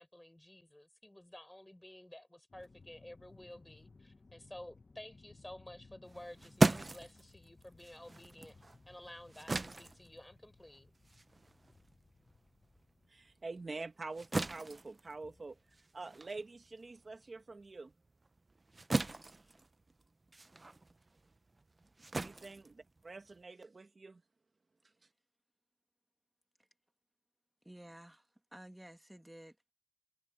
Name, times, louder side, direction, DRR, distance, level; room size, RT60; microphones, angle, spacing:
voice 1, 0.0-8.6 8.9-10.9, left 1 dB, 20° left, 5.3 m, -53 dB
sound 1, 2.5-15.8, left 3 dB, 80° left, 1.1 m, -62 dB
sound 2, 6.0-12.8 13.2-23.4, right 2 dB, 60° right, 0.6 m, -38 dB
voice 2, 13.1-15.6 15.9-17.9 22.2-24.2, right 3 dB, 90° right, 1.9 m, -46 dB
voice 3, 27.6-29.7, right 1 dB, 15° right, 2.3 m, -54 dB
wide cardioid pair, 50°, 0 cm